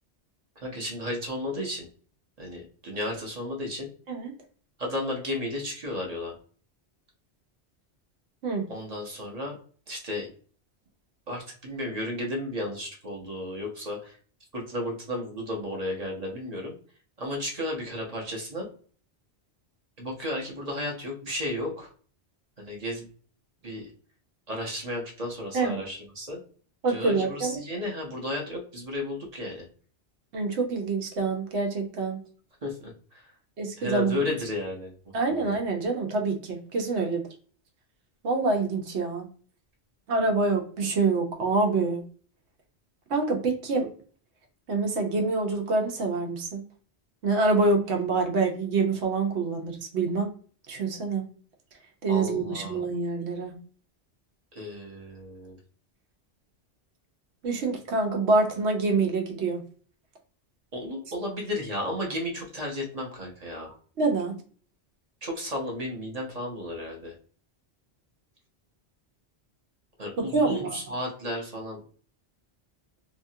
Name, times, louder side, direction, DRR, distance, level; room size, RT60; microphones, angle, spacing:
voice 1, 0.6-1.9 2.4-3.9 4.8-6.4 8.7-9.5 9.9-10.3 11.3-14.2 14.5-16.7 17.2-18.7 20.0-21.9 22.6-23.0 23.6-23.9 24.5-26.4 26.9-29.6 32.6-33.3 33.8-34.9 35.3-35.5 52.1-52.8 54.5-55.6 60.7-63.8 65.2-67.1 70.0-71.8, left 1 dB, 40° right, 0 dB, 0.8 m, -33 dB
voice 2, 26.8-27.6 30.3-32.2 33.6-34.3 35.1-37.2 38.2-39.3 40.1-42.0 43.1-43.9 44.7-46.6 47.2-50.3 50.7-51.2 52.0-53.5 57.4-59.6 64.0-64.3 70.3-70.8, right 3 dB, 85° right, 3 dB, 1.0 m, -26 dB
2.8 x 2.4 x 2.7 m, 0.44 s
omnidirectional pair, 1.1 m